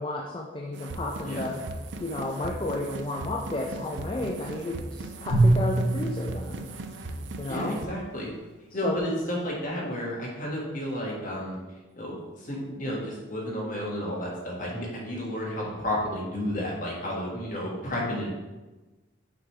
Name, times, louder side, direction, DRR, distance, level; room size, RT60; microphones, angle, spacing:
voice 1, 0.0-1.6 2.0-6.7 7.4-7.8 8.8-9.0, left 2 dB, 25° left, 0 dB, 0.4 m, -32 dB
sound 1, 0.7-7.9, right 3 dB, 75° right, 0.4 m, -39 dB
Drum, 5.3-7.7, right 2 dB, 65° left, 1.9 m, -25 dB
voice 2, 7.5-8.3 8.7-11.6 11.9-18.4, left 1 dB, 45° left, -4 dB, 1.5 m, -32 dB
5.9 x 3.4 x 4.6 m, 1.2 s
head